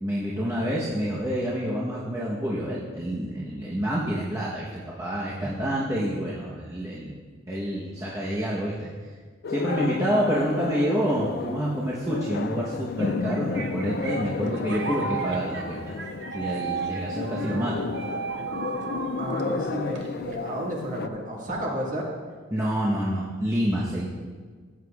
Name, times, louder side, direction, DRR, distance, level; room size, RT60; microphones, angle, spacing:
voice 1, 0.0-7.2 7.5-8.9 9.5-15.9 16.3-17.8 22.5-24.0, equal, 15° right, -7 dB, 0.9 m, -28 dB
voice 2, 5.4-5.7 19.2-22.2, equal, 35° right, -3 dB, 1.7 m, -32 dB
sound 1, 9.4-21.1, left 4 dB, 50° left, 0.3 m, -32 dB
sound 2, 13.0-20.5, right 5 dB, 55° right, 0.8 m, -35 dB
14.5 x 8.1 x 2.4 m, 1.5 s
head